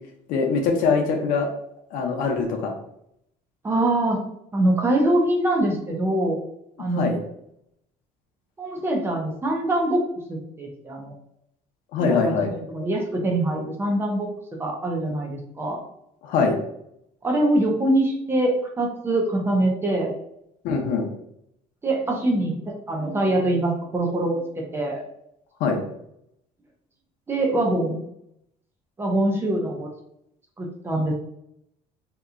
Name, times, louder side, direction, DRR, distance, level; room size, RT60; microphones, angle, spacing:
voice 1, 0.3-1.5 1.9-2.7 6.9-7.2 11.9-12.5 16.2-16.6 20.6-21.1 25.6-25.8, left 4 dB, 70° left, 3 dB, 0.7 m, -22 dB
voice 2, 3.6-4.2 4.5-6.4 6.8-7.2 8.6-10.0 10.3-11.1 12.0-14.3 14.6-15.8 17.2-20.1 21.8-25.0 27.3-28.0 29.0-29.9 30.6-31.1, right 1 dB, 15° right, 0 dB, 0.6 m, -24 dB
2.9 x 2.2 x 3.6 m, 0.76 s
cardioid pair, 150°, 14 cm